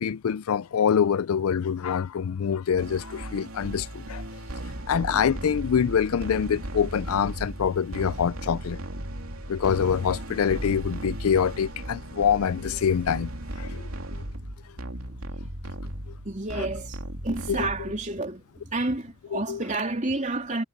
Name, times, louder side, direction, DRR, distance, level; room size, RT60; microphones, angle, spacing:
voice 1, 0.0-4.2 4.9-8.8 9.5-13.3 13.6-14.2 16.6-16.7 17.5-17.7 19.3-19.6, left 7 dB, 85° left, 0.4 m, -25 dB
sound 1, 2.8-18.2, right 1 dB, 80° right, 2.9 m, -36 dB
voice 2, 16.2-17.0 17.2-18.4 18.7-20.6, right 2 dB, 35° right, 3.3 m, -29 dB
head